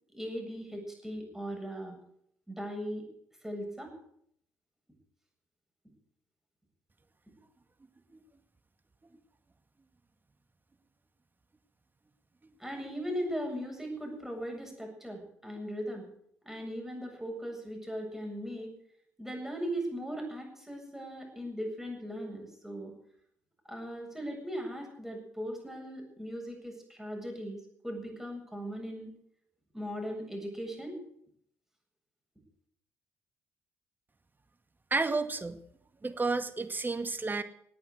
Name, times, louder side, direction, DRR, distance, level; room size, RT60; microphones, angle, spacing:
voice 1, 0.1-1.9 2.5-3.0 3.4-3.9 12.6-16.1 16.4-18.7 19.2-22.9 23.7-29.1 29.7-30.9, equal, 5° right, 2 dB, 7.8 m, -38 dB
voice 2, 34.9-35.6 36.0-37.4, right 3 dB, 25° right, 9 dB, 1.9 m, -31 dB
18.5 x 9.2 x 8.2 m, 0.69 s
hypercardioid pair, 55°, 8 cm